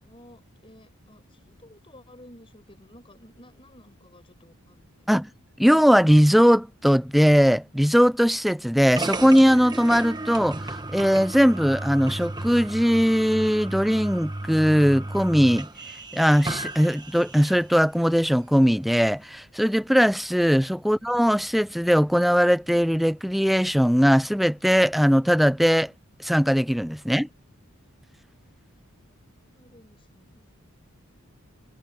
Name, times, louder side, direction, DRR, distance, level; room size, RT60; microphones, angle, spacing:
voice 1, 0.0-5.1 29.3-30.4, left 1 dB, 25° left, 5.0 m, -53 dB
voice 2, 5.6-10.6 10.9-15.7 16.1-25.9 26.2-27.3, equal, ahead, 0.4 m, -20 dB
sound 1, 9.0-17.7, right 2 dB, 20° right, 1.3 m, -34 dB
head